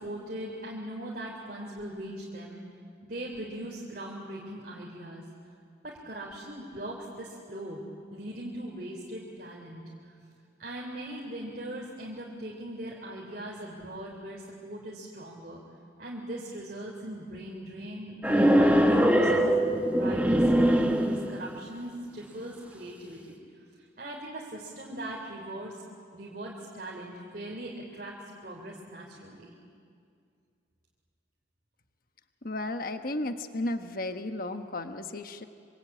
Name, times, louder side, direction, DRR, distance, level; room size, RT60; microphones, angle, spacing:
voice 1, 0.0-2.6 3.0-5.2 5.8-7.8 8.1-10.1 10.6-15.6 16.0-19.6 20.0-23.4 23.8-25.8 26.1-28.2 28.4-29.5, right 1 dB, 45° right, -3 dB, 3.7 m, -40 dB
sound 1, 18.2-21.5, equal, 10° right, 1.7 m, -22 dB
voice 2, 32.4-35.4, left 2 dB, 50° left, 7 dB, 1.2 m, -34 dB
26.0 x 25.5 x 8.8 m, 2.3 s
head